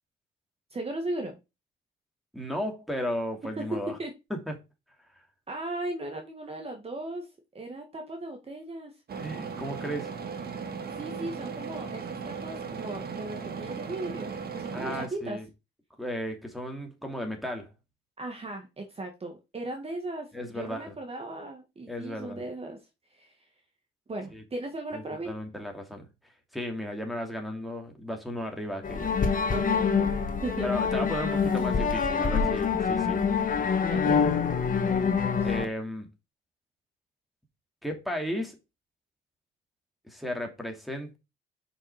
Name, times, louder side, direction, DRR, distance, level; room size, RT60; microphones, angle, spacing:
voice 1, 0.7-1.4 3.6-3.7 4.0-4.1 5.5-7.3 7.5-8.9 11.0-15.4 18.2-22.8 23.1-23.4 24.1-25.3 29.5-30.1 30.4-30.7 33.9-34.2 35.4-35.5, right 2 dB, 30° right, 1.7 m, -37 dB
voice 2, 2.3-4.0 4.3-4.5 9.2-10.1 14.7-15.4 16.0-17.7 20.3-20.9 21.9-22.4 24.3-24.4 24.9-26.1 26.5-29.6 30.6-33.2 35.4-36.1 37.8-38.6 40.1-41.2, equal, ahead, 2.7 m, -35 dB
sound 1, 9.1-15.1, right 5 dB, 50° right, 1.7 m, -37 dB
sound 2, 28.8-35.6, left 6 dB, 45° left, 1.6 m, -26 dB
5.7 x 5.7 x 4.8 m
cardioid pair, 90°, 20 cm